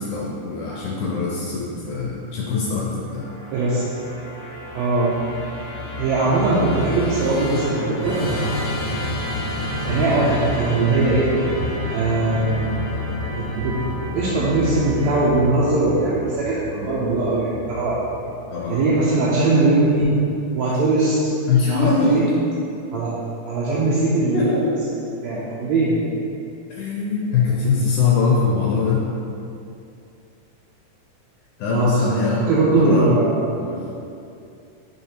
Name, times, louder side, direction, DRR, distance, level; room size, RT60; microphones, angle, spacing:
voice 1, 0.0-3.3 15.9-16.1 18.5-18.8 21.5-22.1 24.3-24.7 26.7-29.0 31.6-32.4 32.7-33.1 33.6-33.8, left 5 dB, 80° left, -4 dB, 1.9 m, -22 dB
Musical instrument, 3.1-18.4, left 1 dB, 45° left, 1.2 m, -29 dB
voice 2, 3.5-3.8 4.7-5.2 6.0-8.2 9.9-11.3 11.9-12.7 13.5-13.8 14.1-18.0 18.7-20.1 20.5-21.3 21.6-22.3 22.9-23.1 23.5-24.7 25.2-26.0 31.7-33.5, right 2 dB, 80° right, -7 dB, 1.7 m, -20 dB
4.9 x 3.9 x 2.8 m, 2.6 s
omnidirectional pair, 3.5 m